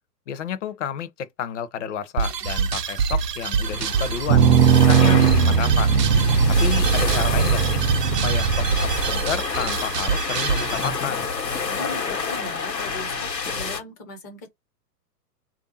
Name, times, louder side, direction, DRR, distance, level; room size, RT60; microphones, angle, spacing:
voice 1, 0.3-4.5 4.7-5.9 6.6-7.8 8.2-8.7 9.0-11.3, left 8 dB, 50° left, 0.7 m, -30 dB
sound 1, 2.2-10.9, right 6 dB, 75° right, 0.7 m, -26 dB
sound 2, 3.6-13.8, left 5 dB, 85° left, 1.1 m, -29 dB
sound 3, 4.3-9.1, right 6 dB, 40° right, 0.5 m, -19 dB
voice 2, 11.6-14.5, left 1 dB, 15° left, 0.4 m, -38 dB
3.3 x 2.6 x 4.0 m
figure-of-eight pair, 115°, 49 cm